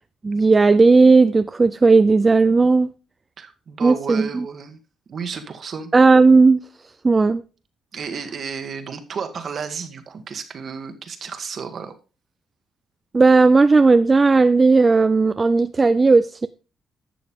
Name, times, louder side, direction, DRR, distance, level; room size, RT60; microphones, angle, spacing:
voice 1, 0.2-2.9 3.8-4.5 5.9-6.6 7.0-7.4 13.1-16.5, right 3 dB, 25° right, 0.4 m, -15 dB
voice 2, 3.4-4.8 5.1-5.9 7.9-11.9, right 6 dB, 50° right, 1.6 m, -32 dB
11.5 x 7.0 x 3.6 m
cardioid pair, 90°, 0 cm